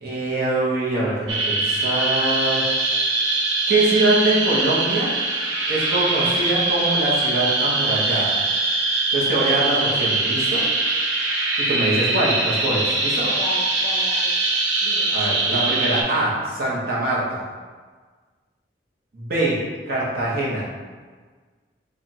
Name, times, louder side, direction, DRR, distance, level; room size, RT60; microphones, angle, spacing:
voice 1, 0.0-2.6 3.7-5.1 5.7-8.4 9.1-10.6 11.6-13.3 15.1-17.4 19.1-19.6 19.9-20.7, right 2 dB, 55° right, -6 dB, 1.0 m, -23 dB
sound 1, 1.3-16.0, right 2 dB, 80° right, 0.6 m, -22 dB
voice 2, 13.2-14.4 14.8-15.2, left 2 dB, 35° left, -2 dB, 0.6 m, -34 dB
4.9 x 2.4 x 2.8 m, 1.5 s
head